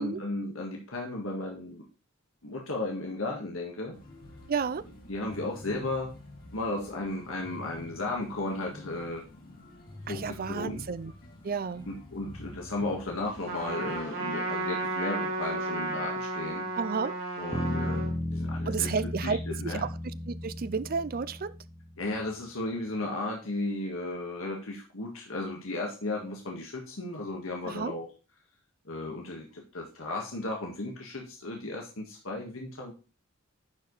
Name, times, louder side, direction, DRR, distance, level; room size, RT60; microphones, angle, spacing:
voice 1, 0.0-1.8 2.4-4.0 5.1-6.1 6.5-9.2 10.1-10.8 11.8-16.6 17.4-19.9 22.0-28.1 28.8-32.9, left 2 dB, 80° left, 1.7 m, -35 dB
sound 1, 3.9-14.0, left 1 dB, 45° left, 2.9 m, -48 dB
voice 2, 4.5-4.8 10.1-11.1 11.4-11.9 16.8-17.1 18.7-19.9 20.3-21.5 27.6-27.9, right 5 dB, 45° right, 0.5 m, -31 dB
Trumpet, 13.5-18.1, right 2 dB, 70° right, 4.0 m, -33 dB
Bass guitar, 17.5-21.9, left 1 dB, 10° left, 1.0 m, -34 dB
10.5 x 4.8 x 4.0 m
head